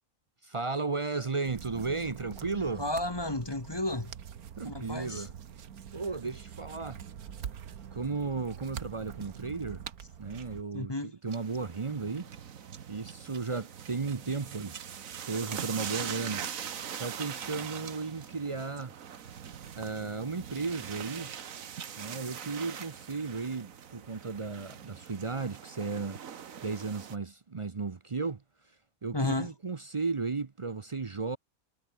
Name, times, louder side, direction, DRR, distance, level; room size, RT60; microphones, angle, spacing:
voice 1, 0.4-2.8 4.6-5.3 5.9-7.0 7.9-9.8 10.2-12.3 12.9-14.8 15.3-16.5 17.0-18.9 19.8-21.3 22.0-26.2 26.6-28.4 29.0-31.4, right 4 dB, 35° right, 0.5 m, -34 dB
sound 1, 1.4-10.6, right 8 dB, 90° right, 1.7 m, -44 dB
voice 2, 2.8-4.1 4.6-5.3 10.7-11.1 29.1-29.5, left 2 dB, 20° left, 1.4 m, -32 dB
sound 2, 11.3-27.2, right 8 dB, 65° right, 1.6 m, -42 dB
omnidirectional pair, 1.5 m